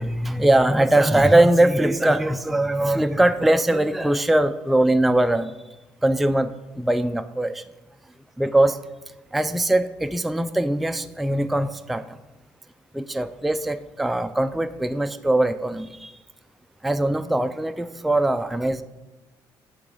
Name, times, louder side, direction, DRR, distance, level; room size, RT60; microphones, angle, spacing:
voice 1, 0.0-7.6 8.4-8.8 9.3-12.2 12.9-16.1 16.8-18.8, right 1 dB, ahead, 9 dB, 0.3 m, -21 dB
5.9 x 3.5 x 5.0 m, 1.1 s
hypercardioid pair, 50°, 11 cm